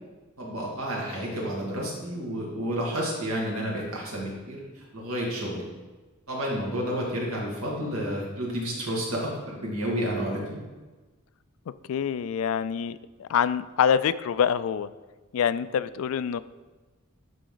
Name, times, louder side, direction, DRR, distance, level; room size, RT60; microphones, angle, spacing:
voice 1, 0.4-5.6 6.3-10.6, equal, 85° right, -3 dB, 2.2 m, -30 dB
voice 2, 11.9-14.9 15.3-16.4, left 8 dB, 70° left, 15 dB, 0.3 m, -25 dB
11.5 x 4.1 x 3.9 m, 1.3 s
head